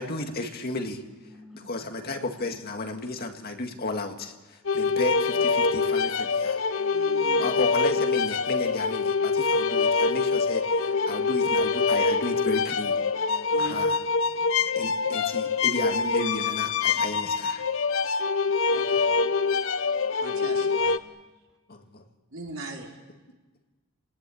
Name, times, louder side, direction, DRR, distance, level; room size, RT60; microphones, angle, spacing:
voice 1, 0.0-1.0 1.5-6.6 7.4-13.0 13.3-14.0 14.8-17.6 21.7-22.1, left 2 dB, 45° left, 4 dB, 2.0 m, -33 dB
voice 2, 1.0-2.7 6.8-8.5 13.2-13.9 14.4-14.8 18.4-19.5 19.9-20.9, left 1 dB, 5° right, 0 dB, 3.7 m, -54 dB
sound 1, 4.6-21.0, left 4 dB, 65° left, 0.8 m, -25 dB
voice 3, 6.9-7.8 13.5-13.8 18.7-19.1 20.2-21.0 22.3-23.0, right 2 dB, 70° right, 0 dB, 4.2 m, -40 dB
29.5 x 19.5 x 8.6 m, 1.2 s
head